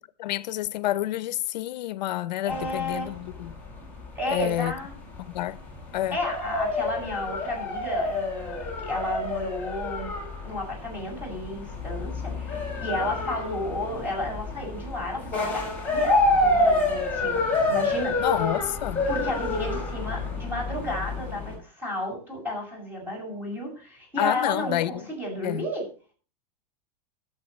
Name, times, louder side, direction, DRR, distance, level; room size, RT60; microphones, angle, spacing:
voice 1, 0.2-3.5 4.3-4.7 5.2-5.6 5.9-6.2 18.2-19.0 24.2-25.0 25.4-25.7, left 14 dB, 85° left, 0.7 m, -28 dB
voice 2, 2.4-3.1 4.1-4.9 6.1-10.1 10.4-18.3 19.1-25.9, left 1 dB, 10° right, 7.1 m, -32 dB
sound 1, 2.5-21.6, left 2 dB, 5° left, 6.0 m, -28 dB
22.5 x 7.8 x 3.2 m
supercardioid pair, 165°, 21 cm